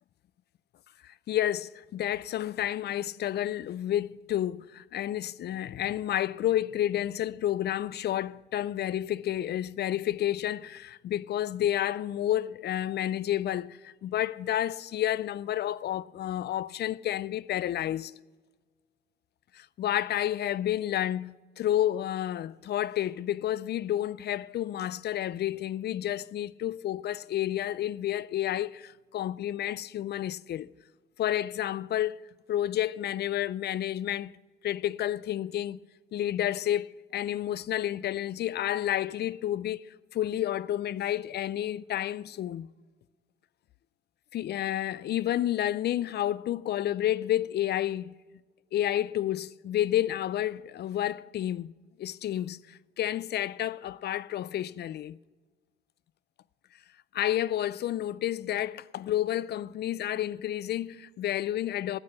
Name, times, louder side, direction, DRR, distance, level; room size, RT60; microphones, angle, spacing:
voice 1, 1.0-18.1 19.5-30.7 31.2-32.2 32.5-34.3 34.6-35.8 36.1-42.7 44.3-48.1 48.7-51.7 52.0-55.2 57.1-62.0, left 12 dB, 55° left, 0.4 m, -30 dB
9.5 x 8.7 x 7.5 m
cardioid pair, 90°, 20 cm